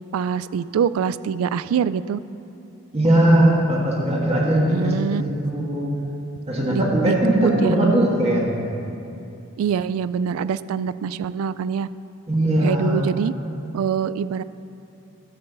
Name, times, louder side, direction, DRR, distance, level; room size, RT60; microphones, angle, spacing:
voice 1, 0.1-2.2 4.7-5.2 6.7-7.8 9.6-11.9 12.6-13.3 13.7-14.4, right 7 dB, 75° right, 15 dB, 0.3 m, -24 dB
voice 2, 2.9-5.9 6.5-8.6 12.3-13.1, right 1 dB, 30° right, -4 dB, 1.5 m, -19 dB
12.5 x 4.5 x 6.8 m, 2.6 s
head